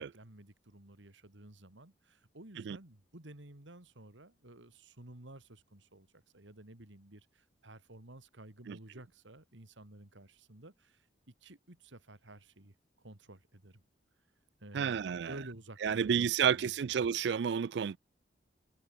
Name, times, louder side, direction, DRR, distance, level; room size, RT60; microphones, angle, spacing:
voice 1, 0.0-11.1 11.4-13.8 14.6-16.9, right 1 dB, 80° right, 2.7 m, -53 dB
voice 2, 14.7-15.3 15.8-18.0, right 7 dB, 65° right, 0.3 m, -30 dB
head